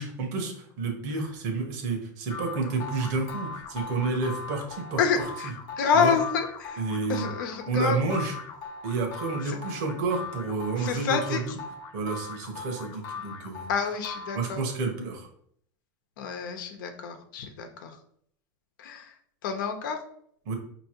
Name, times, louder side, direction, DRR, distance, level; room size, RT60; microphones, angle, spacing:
voice 1, 0.0-5.2 5.9-6.1 6.8-7.3 7.7-8.4 8.8-11.5 11.9-13.7 14.4-15.3 20.5-20.6, right 4 dB, 60° right, 2 dB, 1.1 m, -30 dB
sound 1, 2.3-14.8, left 4 dB, 40° left, 0.8 m, -40 dB
voice 2, 5.0-6.8 7.1-8.0 9.5-9.6 10.8-11.4 13.7-14.6 16.2-17.9 18.8-19.1 19.4-20.0, left 6 dB, 80° left, 5 dB, 0.9 m, -28 dB
5.5 x 3.0 x 3.0 m, 0.65 s
supercardioid pair, 150°, 10 cm